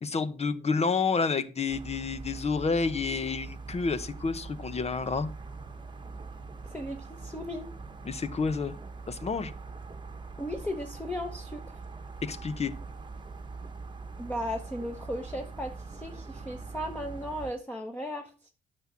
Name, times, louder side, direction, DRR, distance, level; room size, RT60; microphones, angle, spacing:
voice 1, 0.0-5.3 8.0-8.8 9.1-9.5 12.2-12.7, left 4 dB, 30° left, 0.9 m, -29 dB
sound 1, 1.7-17.5, right 4 dB, 25° right, 1.2 m, -43 dB
voice 2, 6.6-7.7 10.4-11.8 14.2-18.5, equal, 10° left, 1.2 m, -36 dB
9.9 x 6.1 x 5.7 m
cardioid pair, 90°, 20 cm